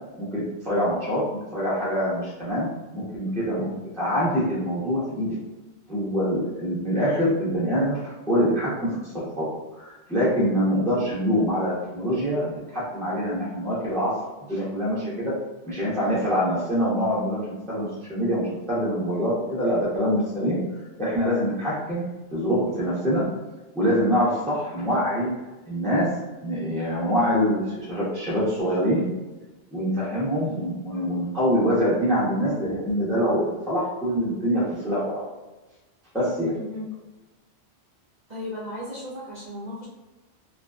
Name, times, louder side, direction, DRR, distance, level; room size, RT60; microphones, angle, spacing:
voice 1, 0.2-2.7 2.9-3.7 4.0-5.4 5.9-9.5 9.8-14.1 14.5-15.3 15.7-20.6 21.0-22.0 22.3-23.2 23.7-25.3 25.7-26.1 26.4-29.0 29.7-35.2 36.1-36.5, equal, 5° left, -8 dB, 0.6 m, -25 dB
voice 2, 36.5-36.9 38.3-39.9, left 1 dB, 50° right, -8 dB, 0.6 m, -35 dB
2.5 x 2.2 x 2.3 m, 1.1 s
omnidirectional pair, 1.2 m